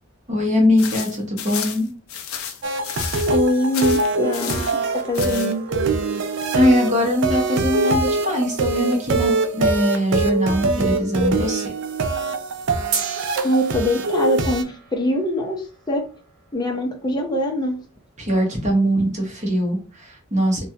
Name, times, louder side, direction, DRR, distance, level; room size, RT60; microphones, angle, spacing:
voice 1, 0.3-1.9 6.5-11.6 18.2-20.6, equal, 35° right, -1 dB, 1.0 m, -21 dB
sound 1, 0.8-3.4 3.7-4.8 5.1-5.5, left 8 dB, 80° left, 0.5 m, -31 dB
sound 2, 2.6-14.6, right 3 dB, 60° right, 0.4 m, -23 dB
voice 2, 3.3-4.6 4.9-5.6 13.4-16.0 16.5-17.7, left 1 dB, 20° left, 2 dB, 0.6 m, -23 dB
sound 3, 4.2-10.7 12.9-17.3, right 5 dB, 80° right, 0.8 m, -38 dB
3.1 x 2.2 x 2.8 m, 0.36 s
head